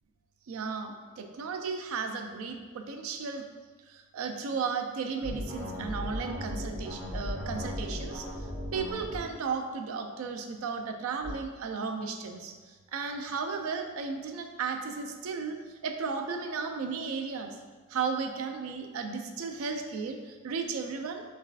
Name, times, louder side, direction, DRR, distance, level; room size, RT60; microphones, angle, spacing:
voice 1, 0.5-3.5 3.9-8.3 8.7-12.5 12.9-17.5 17.9-21.2, right 5 dB, 90° right, 5 dB, 0.4 m, -34 dB
sound 1, 5.2-9.2 11.2-11.3, left 1 dB, 25° right, 1.1 m, -36 dB
3.4 x 3.2 x 2.3 m, 1.4 s
head